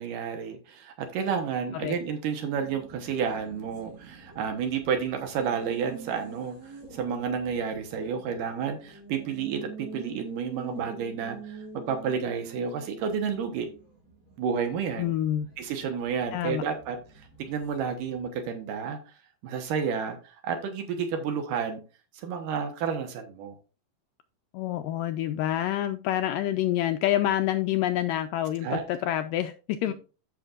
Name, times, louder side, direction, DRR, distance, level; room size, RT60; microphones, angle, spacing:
voice 1, 0.0-13.7 14.4-15.1 15.6-17.0 17.4-19.0 19.4-21.8 22.1-23.5 28.6-28.8 29.9-30.0, right 6 dB, 70° right, 6 dB, 2.4 m, -31 dB
Race car auto racing, 2.4-18.6, right 5 dB, 30° right, 3.4 m, -47 dB
voice 2, 15.0-15.5 16.3-16.6 24.5-29.9, left 12 dB, 85° left, 8 dB, 2.0 m, -27 dB
13.5 x 5.7 x 2.4 m, 0.34 s
omnidirectional pair, 4.3 m